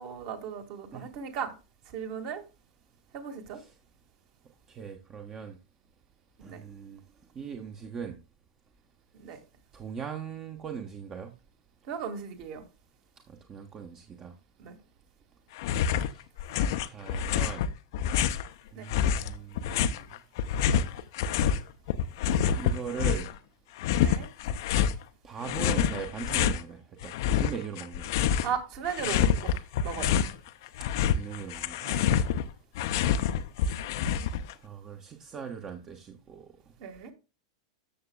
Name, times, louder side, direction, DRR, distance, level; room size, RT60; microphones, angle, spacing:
voice 1, 0.0-1.5 1.9-2.4 3.1-3.6 6.4-6.6 9.1-9.4 11.9-12.6 14.6-14.8 18.7-18.9 24.0-24.3 28.4-29.5 29.8-30.2 31.8-32.2 36.8-37.1, right 7 dB, 45° right, 2.0 m, -36 dB
voice 2, 4.7-5.6 6.4-7.0 7.3-8.2 9.7-11.3 13.3-14.3 15.9-16.2 16.6-17.6 18.7-20.1 21.3-21.6 22.6-23.3 25.2-28.1 31.0-32.0 34.2-34.3 34.6-36.5, right 7 dB, 25° right, 1.0 m, -40 dB
sound 1, 15.6-16.1 16.4-18.5 18.9-21.6 21.9-23.4 23.8-25.0 25.4-26.6 27.0-28.6 28.8-30.3 30.7-34.5, left 8 dB, 50° left, 0.6 m, -27 dB
13.5 x 6.9 x 2.3 m
figure-of-eight pair, 95°, 2 cm